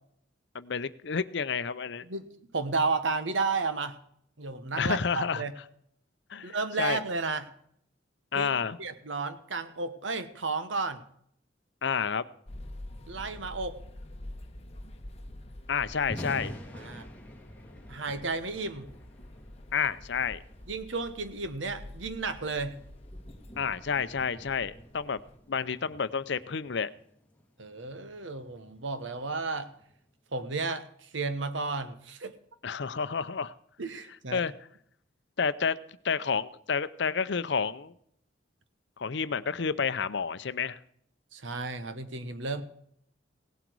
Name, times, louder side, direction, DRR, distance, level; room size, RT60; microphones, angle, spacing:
voice 1, 0.5-2.0 4.8-5.4 6.3-7.0 8.3-8.8 11.8-12.3 15.7-16.5 19.7-20.4 23.6-25.2 25.5-26.9 32.6-33.5 34.3-34.5 35.4-35.8 36.0-37.9 39.0-40.8, left 6 dB, 65° left, 15 dB, 0.6 m, -30 dB
voice 2, 2.5-4.0 4.4-5.5 6.4-7.5 8.3-11.0 13.1-13.8 16.7-17.1 17.9-18.9 20.7-22.8 27.6-29.7 30.3-32.4 33.8-34.4 41.3-42.6, right 3 dB, 85° right, 11 dB, 1.2 m, -33 dB
sound 1, 12.5-25.4, left 1 dB, 35° left, 1.2 m, -47 dB
Thunder, 16.0-30.1, equal, 5° left, 2.3 m, -48 dB
17.5 x 8.0 x 4.7 m, 0.68 s
head